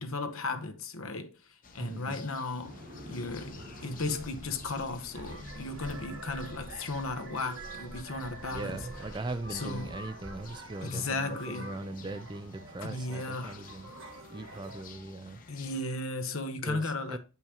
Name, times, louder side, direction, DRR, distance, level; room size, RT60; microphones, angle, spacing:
voice 1, 0.0-8.8 9.5-9.9 10.8-11.7 12.8-13.6 15.5-17.2, left 3 dB, 75° left, 1.0 m, -35 dB
sound 1, 1.6-15.8, left 5 dB, 40° left, 0.8 m, -53 dB
voice 2, 1.8-2.2 8.5-13.9 14.3-15.4 16.6-17.2, right 2 dB, 20° right, 0.4 m, -40 dB
sound 2, 2.6-11.1, equal, 45° right, 1.3 m, -48 dB
sound 3, 5.1-14.8, right 2 dB, 65° right, 1.3 m, -47 dB
8.3 x 5.5 x 2.9 m
head